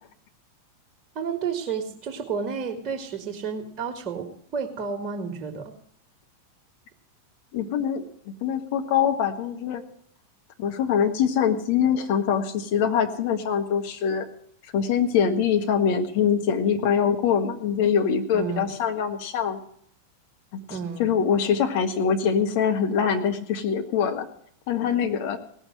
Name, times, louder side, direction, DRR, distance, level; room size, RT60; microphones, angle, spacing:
voice 1, 1.2-5.7 18.3-18.7 20.7-21.1, right 6 dB, 35° right, 2 dB, 1.9 m, -31 dB
voice 2, 7.5-8.0 8.4-9.8 10.6-14.3 14.7-19.6 20.7-24.3 24.7-25.4, left 7 dB, 45° left, 5 dB, 1.5 m, -23 dB
18.0 x 6.3 x 7.6 m, 0.65 s
figure-of-eight pair, 90°, 0 cm